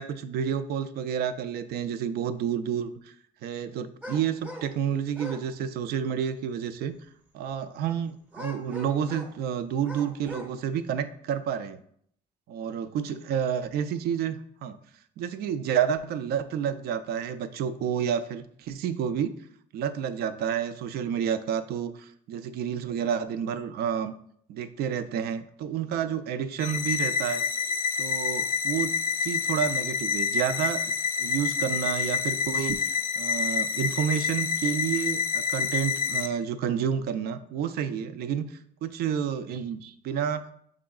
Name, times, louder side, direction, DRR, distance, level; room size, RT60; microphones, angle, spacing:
voice 1, 0.0-3.1 3.4-6.9 7.3-11.8 12.5-14.8 15.2-19.3 19.7-24.1 24.5-27.4 28.0-28.9 29.2-30.8 31.2-40.5, right 8 dB, 70° right, 12 dB, 0.4 m, -30 dB
sound 1, 4.0-4.7 5.1-5.4 8.3-9.4 9.8-10.5, equal, 10° right, 0.7 m, -41 dB
sound 2, 26.6-36.3, left 6 dB, 60° left, 0.4 m, -28 dB
6.0 x 3.8 x 2.3 m, 0.66 s
cardioid pair, 110°, 17 cm